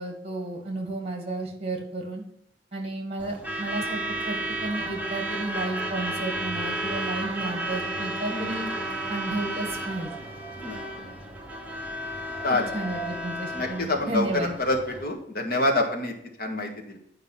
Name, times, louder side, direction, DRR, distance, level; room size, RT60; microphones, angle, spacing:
voice 1, 0.0-2.2 2.7-8.7 9.1-10.1 12.5-14.6, right 2 dB, 35° right, 2 dB, 2.0 m, -32 dB
Truck / Alarm, 3.2-15.1, right 1 dB, 10° right, 1.1 m, -33 dB
voice 2, 10.6-11.1 12.4-12.7 13.5-14.3 14.6-16.1 16.4-17.0, left 2 dB, 55° left, 1 dB, 1.7 m, -27 dB
9.3 x 5.3 x 5.8 m, 0.73 s
head